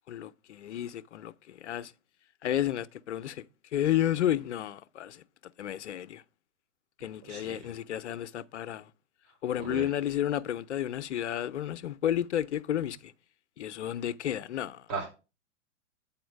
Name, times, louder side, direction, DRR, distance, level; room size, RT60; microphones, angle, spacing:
voice 1, 0.1-1.9 2.4-3.4 3.7-5.2 5.6-6.2 7.0-8.9 9.4-13.1 13.6-14.9, left 11 dB, 70° left, 0.7 m, -31 dB
voice 2, 7.2-7.7 9.6-9.9 14.9-15.2, right 4 dB, 45° right, 4.6 m, -37 dB
8.7 x 4.3 x 5.2 m
hypercardioid pair, 130°, 36 cm